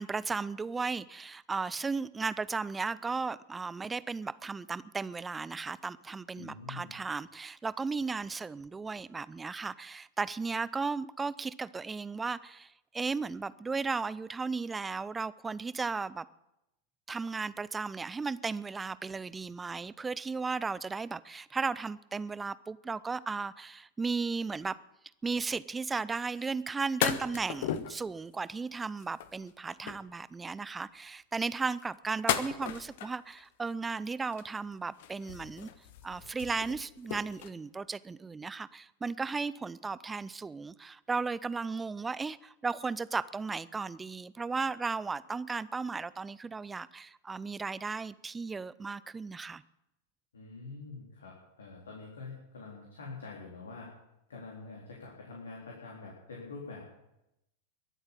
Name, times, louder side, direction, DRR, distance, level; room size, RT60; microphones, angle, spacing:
voice 1, 0.0-16.3 17.1-24.8 25.2-35.7 36.0-49.6, right 4 dB, 15° right, 0.6 m, -35 dB
voice 2, 6.4-6.9 50.3-53.9 54.3-56.9, left 4 dB, 70° left, 3.8 m, -45 dB
sound 1, 26.4-26.5 27.0-28.0 28.8-30.1 31.5-33.4 34.2-34.7 35.0-37.5, left 10 dB, 50° left, 1.1 m, -36 dB
22.5 x 8.1 x 7.4 m
figure-of-eight pair, 90°, 0 cm